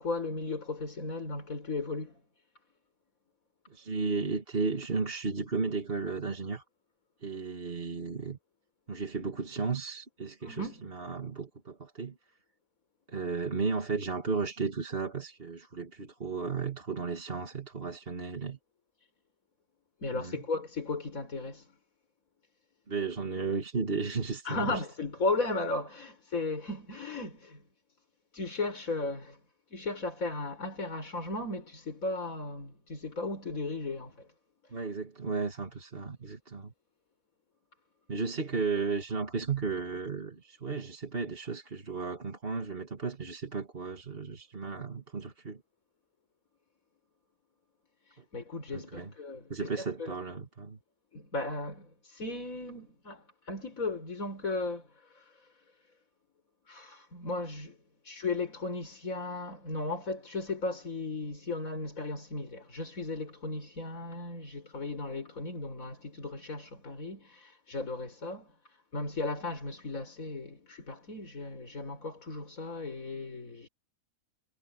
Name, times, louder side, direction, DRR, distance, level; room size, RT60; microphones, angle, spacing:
voice 1, 0.0-2.2 10.4-10.8 20.0-21.7 24.5-27.6 28.3-29.4 29.7-34.3 48.3-50.2 51.1-54.9 55.2-55.3 56.7-57.8 58.0-68.5 68.9-73.7, left 3 dB, 60° left, 5.4 m, -36 dB
voice 2, 3.7-6.6 7.2-8.4 8.9-12.2 13.1-18.6 20.1-20.4 22.9-24.8 34.7-36.7 38.1-45.6 48.7-49.1 49.5-50.8, right 4 dB, 40° right, 2.3 m, -34 dB
omnidirectional pair, 1.6 m